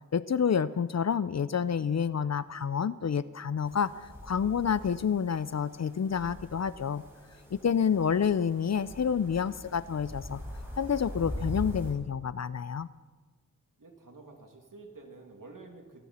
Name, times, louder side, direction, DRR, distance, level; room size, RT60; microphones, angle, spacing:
voice 1, 0.1-3.9 4.2-7.0 7.5-10.4 10.8-12.9, left 7 dB, 50° left, 17 dB, 0.5 m, -28 dB
sound 1, 3.6-11.9, equal, 5° right, 5.2 m, -42 dB
voice 2, 8.0-8.5 13.8-16.1, right 3 dB, 65° right, 2 dB, 2.6 m, -50 dB
25.5 x 11.5 x 4.3 m, 1.3 s
wide cardioid pair, 55°, 35 cm